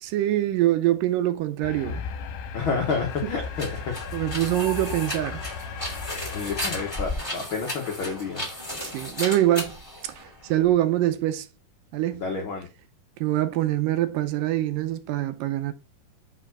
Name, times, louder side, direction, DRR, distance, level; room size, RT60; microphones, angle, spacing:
voice 1, 0.0-2.0 3.2-3.3 3.7-3.8 4.1-5.4 8.8-9.7 10.0-11.5 11.9-12.3 13.2-15.7, right 14 dB, 80° right, 2.1 m, -24 dB
sound 1, 1.6-6.9, left 6 dB, 70° left, 2.3 m, -36 dB
voice 2, 2.5-3.9 6.3-8.5 12.2-12.7, left 4 dB, 90° left, 1.1 m, -29 dB
sound 2, 2.8-10.7, left 1 dB, 10° left, 1.7 m, -35 dB
5.4 x 4.5 x 5.9 m
omnidirectional pair, 4.1 m